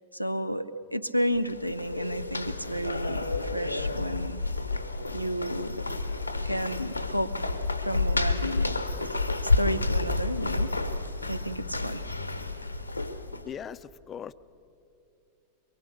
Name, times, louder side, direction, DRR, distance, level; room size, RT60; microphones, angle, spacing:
voice 1, 0.1-4.4 5.1-5.8 6.4-7.5 7.8-8.7 9.2-10.8 11.2-12.1, equal, 90° right, 14 dB, 0.7 m, -32 dB
sound 1, 1.4-13.5, left 3 dB, 85° left, 1.0 m, -30 dB
voice 2, 13.4-14.3, left 8 dB, 25° left, 15 dB, 0.5 m, -39 dB
23.5 x 23.0 x 6.7 m, 2.7 s
figure-of-eight pair, 90°, 0 cm